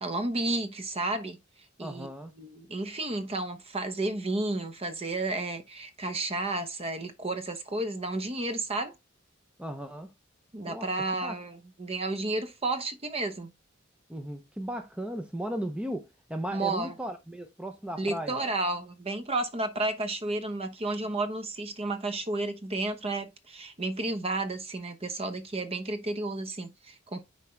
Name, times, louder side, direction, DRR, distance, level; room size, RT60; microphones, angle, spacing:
voice 1, 0.0-1.4 1.8-2.1 2.4-8.9 10.5-13.5 16.5-16.9 18.0-27.2, right 2 dB, 30° right, 1.0 m, -32 dB
voice 2, 1.8-2.3 9.6-10.1 10.6-11.4 14.1-18.4, equal, 5° right, 0.7 m, -36 dB
9.4 x 4.6 x 3.2 m
head